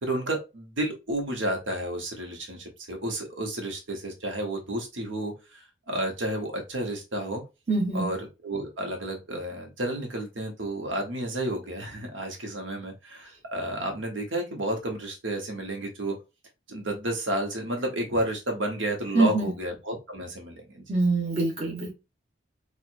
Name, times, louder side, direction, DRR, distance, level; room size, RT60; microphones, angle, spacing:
voice 1, 0.0-7.4 7.9-8.2 8.4-16.2 16.7-20.8, right 1 dB, 85° right, 1.1 m, -31 dB
voice 2, 7.7-8.1 19.1-19.5 20.9-21.9, right 3 dB, 35° right, 1.1 m, -24 dB
4.6 x 2.5 x 2.6 m
head